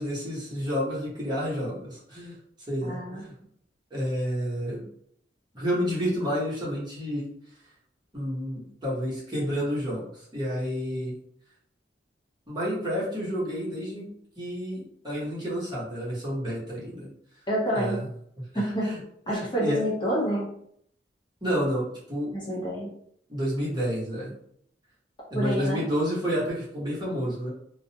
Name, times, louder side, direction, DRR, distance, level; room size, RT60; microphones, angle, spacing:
voice 1, 0.0-2.4 2.7-3.3 3.9-4.8 5.5-7.2 8.1-10.0 10.3-11.2 12.5-14.1 14.4-17.1 17.7-18.0 18.4-19.0 19.3-19.8 21.4-22.3 23.3-24.3 25.3-27.5, equal, 25° right, -7 dB, 0.9 m, -30 dB
voice 2, 2.8-3.2 17.5-18.0 18.5-18.9 19.3-20.5 22.3-22.9 25.3-25.8, right 1 dB, 25° left, -5 dB, 0.7 m, -28 dB
2.3 x 2.0 x 2.7 m, 0.67 s
head